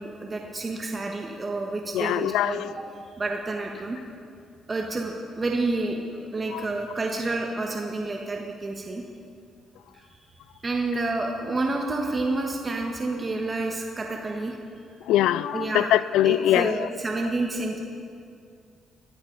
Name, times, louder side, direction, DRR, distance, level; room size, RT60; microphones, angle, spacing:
voice 1, 0.0-2.8 3.2-4.0 4.7-6.0 6.3-9.0 9.9-10.0 10.6-14.6 15.5-15.9 16.2-17.8, right 2 dB, 30° right, 1 dB, 1.4 m, -29 dB
voice 2, 1.9-2.7 6.5-6.6 15.1-16.9, left 13 dB, 90° left, 17 dB, 0.3 m, -22 dB
17.5 x 13.0 x 4.0 m, 2.4 s
cardioid pair, 90°, 0 cm